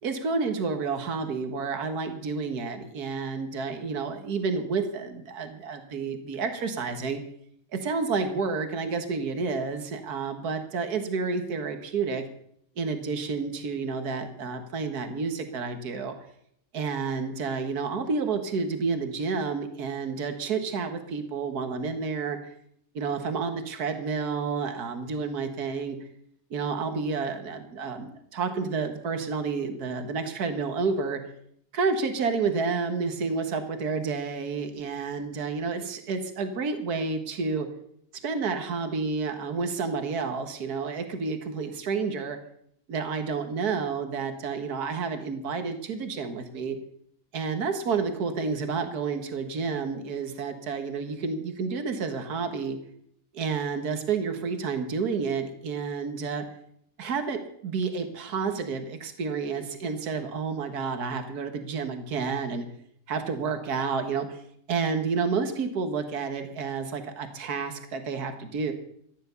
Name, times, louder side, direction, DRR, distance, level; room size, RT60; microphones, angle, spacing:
voice 1, 0.0-7.2 7.7-12.2 12.8-16.1 16.7-22.4 22.9-26.0 26.5-31.2 31.7-37.7 38.2-42.4 42.9-46.8 47.3-52.8 53.3-56.4 57.0-62.7 63.1-64.4 64.7-68.7, right 5 dB, 65° right, 7 dB, 2.0 m, -30 dB
14.5 x 10.5 x 6.9 m, 0.68 s
omnidirectional pair, 1.8 m